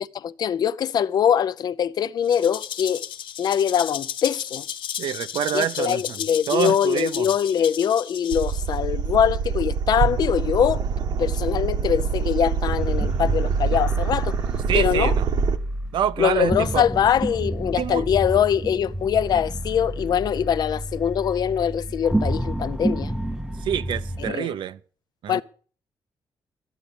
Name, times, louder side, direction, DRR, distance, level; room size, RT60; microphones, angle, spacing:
voice 1, 0.0-3.0 3.4-4.6 5.5-10.8 11.2-14.4 14.7-15.1 16.2-23.1 24.2-24.5 25.3-25.4, left 8 dB, 55° left, 0.5 m, -23 dB
Rattle (instrument), 2.2-8.8, left 9 dB, 85° left, 1.2 m, -34 dB
voice 2, 5.0-6.2 6.5-7.3 14.7-15.3 15.9-16.8 17.8-18.1 23.6-24.8 25.2-25.4, right 9 dB, 75° right, 0.8 m, -26 dB
sound 1, 8.3-15.6, right 6 dB, 60° right, 1.1 m, -25 dB
sound 2, 12.7-24.3, right 1 dB, 5° right, 0.6 m, -30 dB
13.5 x 9.3 x 6.9 m
wide cardioid pair, 160°, 8 cm